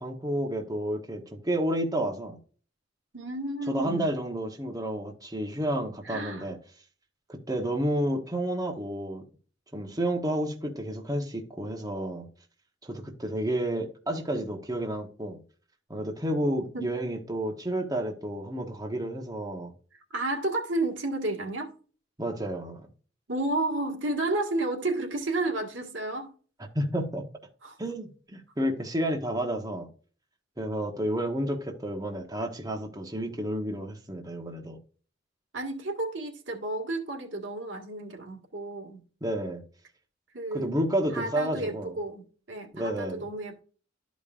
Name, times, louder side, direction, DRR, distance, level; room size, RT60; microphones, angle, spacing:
voice 1, 0.0-2.4 3.7-6.6 7.3-9.2 9.7-12.3 12.8-15.4 15.9-19.7 22.2-22.8 26.7-27.2 27.8-29.9 30.6-34.8 39.2-39.6 40.5-41.9 42.7-43.2, right 1 dB, 20° right, 1.1 m, -30 dB
voice 2, 3.1-4.1 6.0-6.5 16.7-16.9 19.9-21.7 23.3-26.3 27.6-27.8 35.5-39.0 40.3-40.8 41.1-43.6, right 2 dB, 70° right, 1.8 m, -31 dB
12.5 x 5.2 x 2.5 m
head